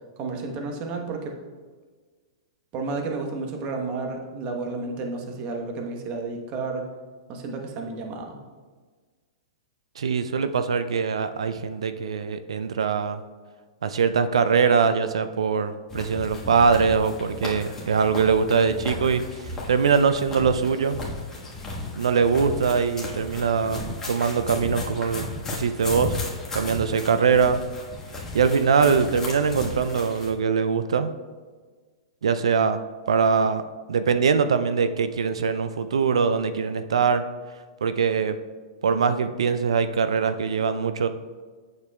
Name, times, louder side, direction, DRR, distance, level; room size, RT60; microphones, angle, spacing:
voice 1, 0.2-1.3 2.7-6.8 7.3-8.4, right 3 dB, 40° right, 2 dB, 1.1 m, -31 dB
voice 2, 10.0-13.2 13.8-19.2 19.7-21.0 22.0-26.2 26.5-27.6 28.3-31.1 32.2-32.8 33.1-33.6 33.9-37.2 37.8-38.4 38.8-41.1, right 5 dB, 75° right, 11 dB, 0.4 m, -22 dB
sound 1, 15.9-30.3, left 2 dB, 15° left, 1.5 m, -35 dB
8.5 x 6.7 x 2.3 m, 1.5 s
hypercardioid pair, 110°, 3 cm